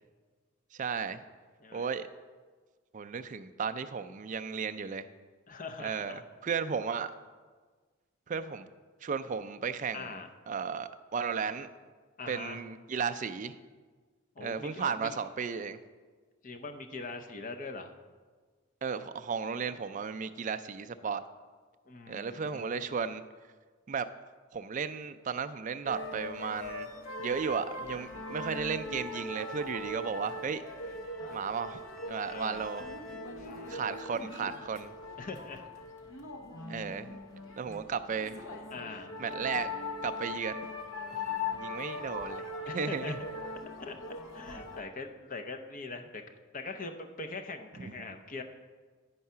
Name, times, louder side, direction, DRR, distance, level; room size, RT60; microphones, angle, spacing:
voice 1, 0.8-1.2 1.7-2.1 2.9-5.1 5.8-7.1 8.3-8.7 9.0-11.7 12.3-13.6 14.4-15.8 18.8-21.2 22.1-23.2 23.9-24.1 24.5-26.9 27.2-30.6 31.3-31.8 32.1-32.9 33.7-34.9 36.7-37.2 37.6-38.6 39.2-39.7 40.0-40.7 41.1-41.2 41.5-42.5 42.7-43.2 47.8-47.9, right 6 dB, 35° right, 10 dB, 0.3 m, -34 dB
voice 2, 5.5-6.2 9.9-10.3 12.2-12.6 14.4-15.2 16.4-17.9 21.9-22.9 32.3-32.7 33.4-33.9 35.2-35.7 38.7-39.2 42.7-43.2 43.8-44.0 44.3-46.2 46.5-48.4, left 3 dB, 35° left, 5 dB, 0.6 m, -42 dB
sound 1, 25.9-44.8, left 2 dB, 65° left, 0.9 m, -40 dB
10.5 x 4.7 x 5.5 m, 1.5 s
head